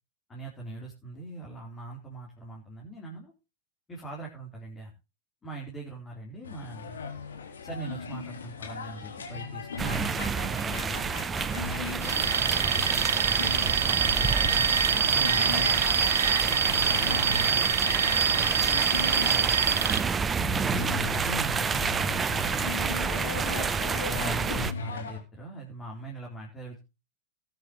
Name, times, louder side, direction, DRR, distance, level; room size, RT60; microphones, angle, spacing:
voice 1, 0.3-3.3 3.9-4.9 5.4-7.0 7.6-11.2 12.0-13.5 13.8-15.9 16.5-17.8 18.2-20.8 21.2-23.7 24.2-26.8, right 2 dB, 20° left, -1 dB, 4.1 m, -42 dB
sound 1, 6.4-25.2, left 5 dB, 70° left, 3.1 m, -38 dB
sound 2, 9.8-24.7, right 5 dB, 20° right, 0.9 m, -29 dB
Alarm, 12.0-20.0, right 7 dB, 70° right, 0.7 m, -25 dB
19.5 x 9.1 x 3.1 m, 0.28 s
figure-of-eight pair, 90°, 0 cm